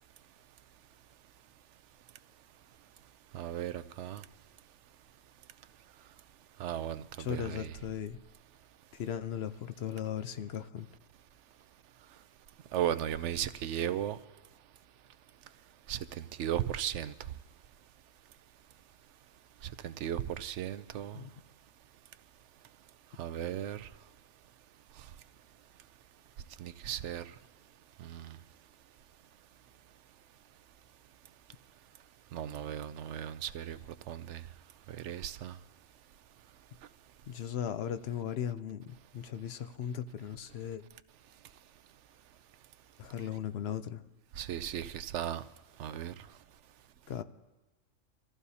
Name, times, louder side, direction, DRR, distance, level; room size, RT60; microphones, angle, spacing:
voice 1, 3.3-4.2 6.6-7.8 12.7-14.2 15.9-17.1 19.8-21.2 23.2-23.9 26.6-27.2 28.0-28.4 32.3-33.8 34.1-34.4 35.0-35.5 44.4-45.4 45.8-46.1, right 10 dB, 70° right, 13 dB, 0.9 m, -36 dB
voice 2, 7.2-8.2 8.9-10.9 21.1-21.3 37.3-38.8 39.1-40.8 43.0-44.0 47.1-47.2, left 9 dB, 60° left, 12 dB, 0.8 m, -37 dB
25.0 x 14.5 x 2.8 m, 1.1 s
omnidirectional pair, 1.3 m